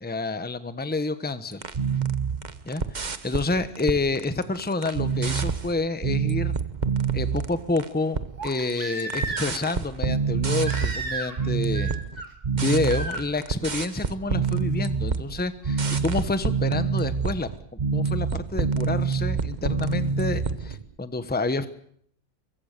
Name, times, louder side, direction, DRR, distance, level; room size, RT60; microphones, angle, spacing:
voice 1, 0.0-1.6 2.6-2.8 3.2-6.6 7.1-11.9 12.5-17.5 17.9-21.7, left 3 dB, 5° left, 11 dB, 1.1 m, -28 dB
sound 1, 1.5-7.9 8.1-8.7 9.0-20.9, right 5 dB, 30° right, 1.1 m, -27 dB
Crying sobbing, 5.7-5.8 8.4-9.7 10.6-11.5 11.7-12.3 12.9-13.2 14.8-14.9, right 2 dB, 75° right, 3.9 m, -33 dB
24.0 x 24.0 x 6.8 m, 0.64 s
omnidirectional pair, 1.7 m